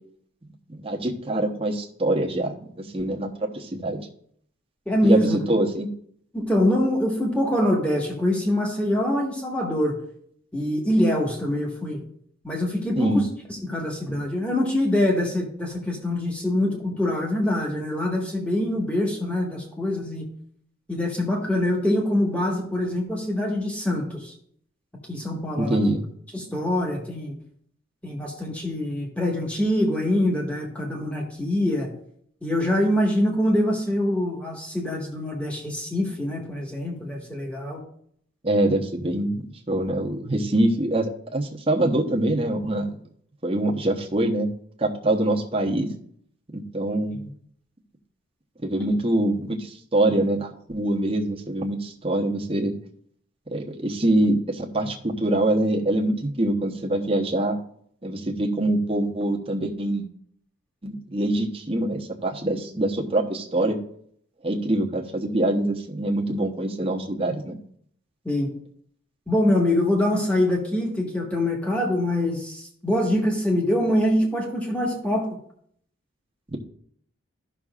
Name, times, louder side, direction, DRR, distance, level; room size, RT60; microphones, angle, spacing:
voice 1, 0.7-4.0 5.0-5.9 13.0-13.2 25.6-26.0 38.4-43.0 43.4-44.5 44.8-45.9 46.5-47.2 48.6-52.7 53.5-57.6 58.0-60.1 60.8-63.8 64.4-67.6 76.5-76.6, right 1 dB, 25° right, 0 dB, 0.9 m, -24 dB
voice 2, 4.9-5.4 6.3-10.0 10.5-12.0 12.4-20.3 20.9-24.3 25.1-25.8 26.3-27.3 28.0-31.9 32.4-37.8 68.2-68.5 69.3-75.3, left 1 dB, 5° left, -1 dB, 1.5 m, -24 dB
14.5 x 6.0 x 2.4 m, 0.64 s
head